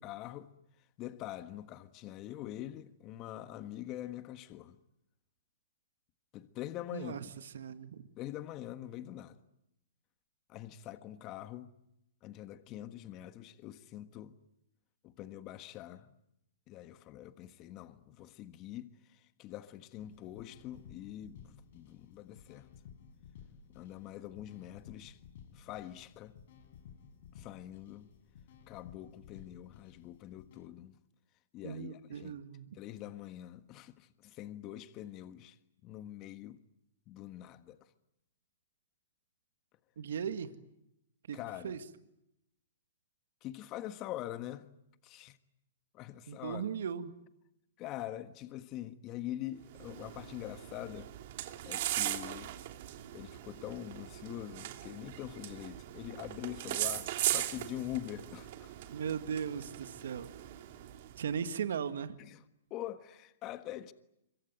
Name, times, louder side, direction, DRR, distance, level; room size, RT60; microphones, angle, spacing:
voice 1, 0.0-0.5 1.0-4.8 6.3-7.4 8.2-9.4 10.5-11.7 12.2-14.4 15.0-16.1 16.7-22.7 23.7-25.2 25.5-26.3 27.3-28.1 28.7-31.0 31.5-32.4 32.7-35.6 35.8-36.6 37.1-37.9 41.3-41.8 43.4-44.7 45.0-45.4 45.9-46.6 47.8-51.1 51.6-52.5 53.1-58.7 62.2-62.4 62.7-63.9, left 13 dB, 35° left, 1.4 m, -44 dB
voice 2, 6.9-8.0 31.6-32.8 40.0-40.5 41.3-41.4 41.6-41.8 46.3-47.1 58.9-60.3 61.2-62.2, right 7 dB, 70° right, 1.8 m, -37 dB
sound 1, 19.9-30.7, left 8 dB, 60° left, 5.1 m, -56 dB
sound 2, 49.6-61.4, right 14 dB, 55° right, 2.8 m, -39 dB
26.0 x 24.0 x 9.2 m
hypercardioid pair, 130°, 0 cm